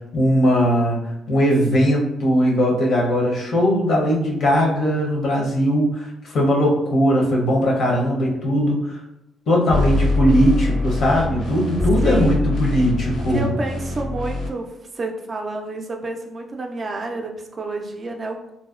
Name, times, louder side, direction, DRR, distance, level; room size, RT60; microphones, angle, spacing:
voice 1, 0.1-1.0 1.3-9.0 9.5-13.5, equal, 65° left, -2 dB, 0.7 m, -19 dB
sound 1, 9.7-14.5, left 2 dB, 90° left, 1.0 m, -23 dB
voice 2, 12.0-12.5 13.3-14.7 14.9-18.5, right 2 dB, 35° right, 3 dB, 0.3 m, -29 dB
2.5 x 2.0 x 2.3 m, 0.87 s
cardioid pair, 90°, 0 cm